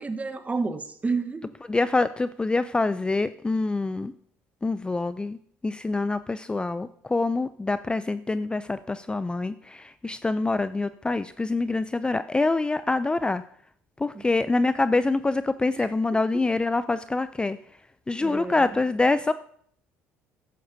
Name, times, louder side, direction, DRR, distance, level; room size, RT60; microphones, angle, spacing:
voice 1, 0.0-1.5 14.1-14.2 15.8-15.9 18.2-18.6, right 4 dB, 25° right, 1.2 m, -30 dB
voice 2, 1.7-4.1 4.6-5.4 5.6-13.4 14.0-17.6 18.1-19.3, left 3 dB, 15° left, 0.4 m, -25 dB
14.0 x 10.5 x 2.7 m
hypercardioid pair, 65°, 6 cm